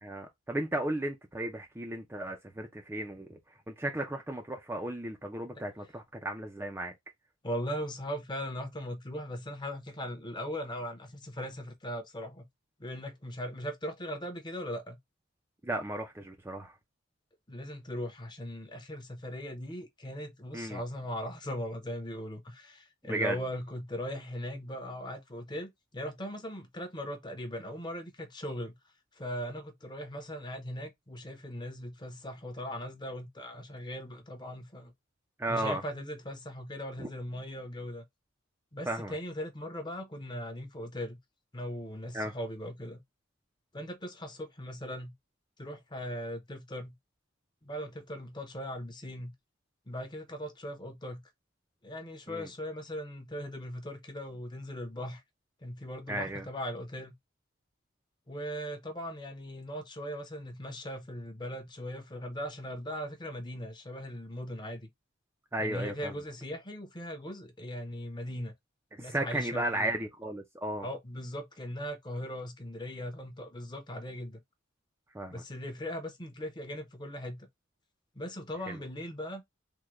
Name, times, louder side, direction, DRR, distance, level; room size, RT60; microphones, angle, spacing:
voice 1, 0.0-3.4 3.7-6.9 15.6-16.7 20.5-20.8 23.0-23.4 35.4-35.8 37.0-37.1 38.9-39.1 42.1-42.3 52.3-52.5 56.1-56.4 65.5-66.1 68.9-70.9 75.1-75.4 78.7-78.8, right 1 dB, 10° right, 0.4 m, -34 dB
voice 2, 7.4-12.5 12.8-15.0 17.5-28.8 29.1-34.9 35.5-38.0 38.7-41.2 41.5-43.0 43.7-45.1 45.6-46.9 47.6-49.3 49.9-51.2 51.8-55.2 55.6-57.1 58.3-64.9 65.6-68.5 69.0-69.9 70.8-74.4 75.3-77.5 78.1-79.4, equal, 20° left, 0.8 m, -39 dB
3.6 x 2.1 x 3.0 m
head